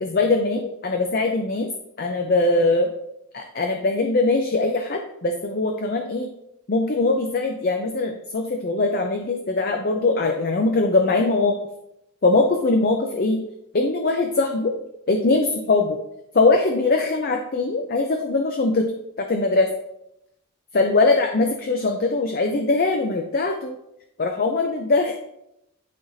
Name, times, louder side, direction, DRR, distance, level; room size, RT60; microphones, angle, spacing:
voice 1, 0.0-1.7 2.0-2.9 3.3-6.3 6.7-11.6 12.2-13.4 13.7-14.8 15.1-16.0 16.3-18.9 19.2-19.7 20.7-23.8 24.2-25.2, left 3 dB, 45° left, 4 dB, 0.5 m, -21 dB
11.5 x 4.0 x 2.7 m, 0.82 s
head